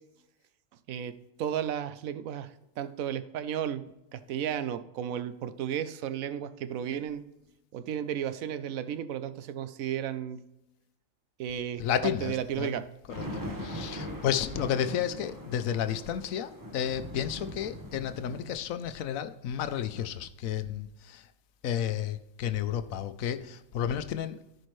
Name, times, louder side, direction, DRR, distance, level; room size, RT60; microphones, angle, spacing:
voice 1, 1.4-3.8 4.1-7.2 7.7-10.4 11.4-12.8, right 9 dB, 85° right, 1.1 m, -33 dB
voice 2, 11.8-12.8 13.2-13.3 13.6-21.2 21.6-24.4, left 9 dB, 85° left, 1.1 m, -32 dB
sound 1, 13.1-18.5, equal, 15° right, 1.1 m, -40 dB
14.5 x 5.3 x 3.2 m
omnidirectional pair, 1.4 m